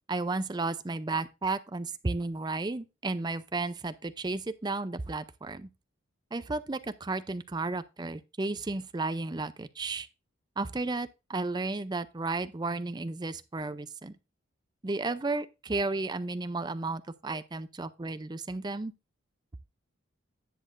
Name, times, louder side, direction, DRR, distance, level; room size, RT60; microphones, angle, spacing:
voice 1, 0.1-5.7 6.3-10.1 10.6-14.1 14.8-18.9, right 3 dB, 20° right, 0.4 m, -33 dB
10.0 x 8.4 x 2.5 m
head